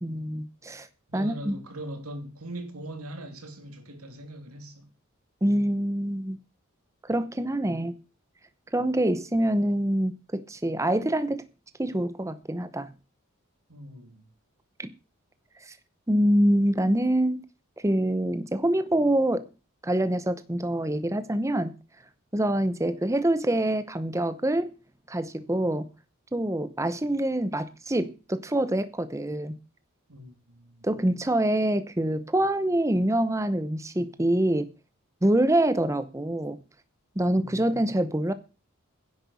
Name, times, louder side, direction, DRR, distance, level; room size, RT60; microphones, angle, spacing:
voice 1, 0.0-0.9 1.1-1.5 5.4-6.4 7.0-8.0 8.7-11.4 11.8-12.9 14.8-14.9 15.7-15.8 16.1-17.4 17.8-19.4 19.8-21.7 22.3-24.7 25.1-25.9 26.3-29.5 30.8-34.7 35.2-36.6 37.2-38.3, right 1 dB, 15° right, 0.8 m, -25 dB
voice 2, 1.1-4.9 13.7-14.3 30.1-30.9 37.3-38.0, right 1 dB, 85° right, 3.0 m, -41 dB
10.5 x 7.9 x 8.4 m
head